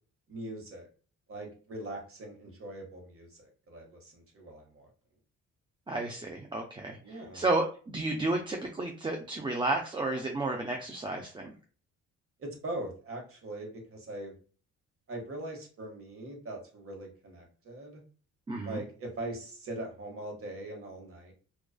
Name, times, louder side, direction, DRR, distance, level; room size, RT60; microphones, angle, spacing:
voice 1, 0.3-0.9 1.3-4.9 7.0-7.4 12.4-14.4 15.1-18.0 18.6-21.3, right 1 dB, 45° right, 2 dB, 1.1 m, -41 dB
voice 2, 5.9-11.5 18.5-18.8, right 2 dB, 15° right, 2 dB, 0.4 m, -32 dB
2.3 x 2.3 x 2.3 m, 0.39 s
cardioid pair, 90°, 30 cm